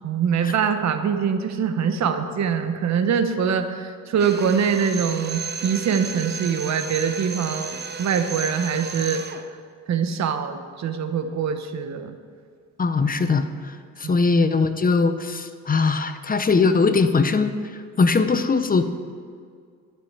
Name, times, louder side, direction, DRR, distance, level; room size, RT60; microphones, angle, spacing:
voice 1, 0.0-9.2 9.9-12.1 14.0-14.1, right 7 dB, 65° right, 8 dB, 1.1 m, -23 dB
Drill, 4.2-9.5, right 6 dB, 35° right, 0.8 m, -34 dB
voice 2, 12.8-17.5 18.0-18.8, left 4 dB, 30° left, 9 dB, 0.7 m, -20 dB
12.0 x 7.0 x 7.4 m, 2.1 s
cardioid pair, 90°, 30 cm